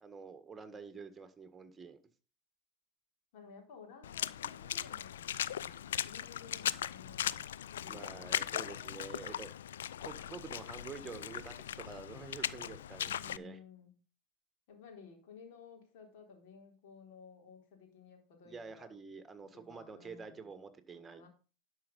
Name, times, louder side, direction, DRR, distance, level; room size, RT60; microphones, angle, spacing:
voice 1, 0.0-2.0 7.9-9.5 10.0-13.6 18.4-21.3, right 5 dB, 20° right, 1.6 m, -48 dB
voice 2, 3.3-7.4 7.7-9.3 13.0-14.0 14.7-18.9 19.5-20.5 20.9-21.3, left 5 dB, 65° left, 3.7 m, -56 dB
Water / Splash splatter, 4.0-13.4, left 10 dB, 85° left, 0.4 m, -39 dB
11.0 x 5.6 x 5.4 m
hypercardioid pair, 90°, 0 cm